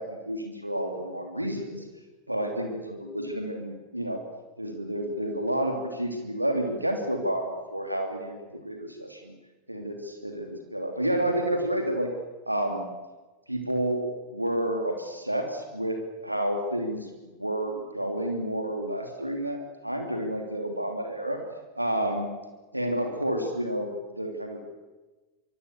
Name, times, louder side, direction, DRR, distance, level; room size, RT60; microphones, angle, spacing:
voice 1, 0.0-1.8 2.3-4.2 4.6-9.3 9.7-12.1 12.5-12.8 13.5-21.4 21.7-22.3 22.7-24.6, right 1 dB, 85° right, 4 dB, 3.2 m, -30 dB
25.0 x 24.5 x 7.0 m, 1.2 s
figure-of-eight pair, 90°, 0 cm